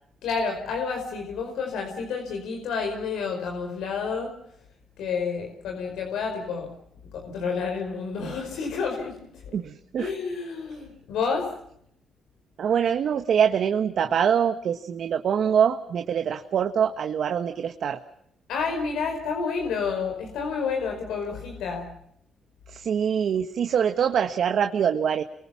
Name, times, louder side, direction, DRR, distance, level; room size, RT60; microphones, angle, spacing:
voice 1, 0.2-4.3 5.0-6.7 7.1-9.2 9.5-9.6 10.0-11.5 18.5-21.9, left 5 dB, 85° left, 3 dB, 5.1 m, -29 dB
voice 2, 9.5-10.1 12.6-18.0 22.7-25.2, right 8 dB, 65° right, 7 dB, 1.5 m, -24 dB
28.5 x 24.0 x 5.8 m, 0.71 s
cardioid pair, 80°, 0 cm